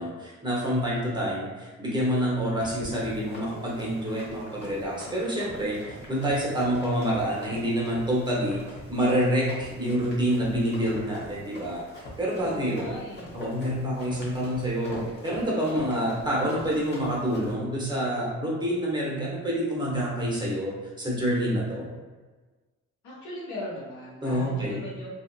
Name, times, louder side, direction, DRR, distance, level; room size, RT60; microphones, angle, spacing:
voice 1, 0.0-8.6 8.9-13.0 13.3-21.9 24.2-24.8, equal, 15° right, -5 dB, 0.9 m, -27 dB
Run, 2.6-17.5, left 1 dB, 35° left, 0.9 m, -44 dB
voice 2, 12.4-13.3 23.0-25.1, left 1 dB, 75° left, -5 dB, 1.0 m, -38 dB
2.7 x 2.4 x 2.2 m, 1.3 s
cardioid pair, 90°, 30 cm